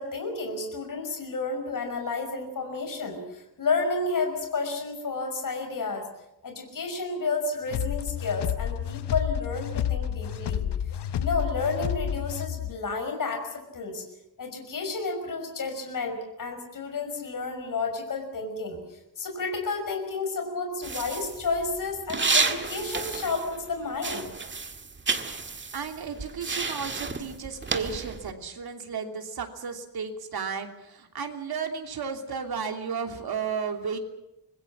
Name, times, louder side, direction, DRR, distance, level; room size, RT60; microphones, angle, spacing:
voice 1, 0.0-6.1 6.4-10.7 11.1-14.1 14.4-24.3, left 4 dB, 55° left, 4 dB, 5.6 m, -31 dB
sound 1, 7.7-12.8, left 10 dB, 85° left, 1.0 m, -30 dB
sound 2, 20.8-23.7 24.0-28.3, right 4 dB, 30° right, 1.7 m, -31 dB
voice 2, 25.4-34.0, right 6 dB, 65° right, 4 dB, 3.0 m, -34 dB
25.0 x 20.5 x 7.4 m, 0.89 s
wide cardioid pair, 165°, 39 cm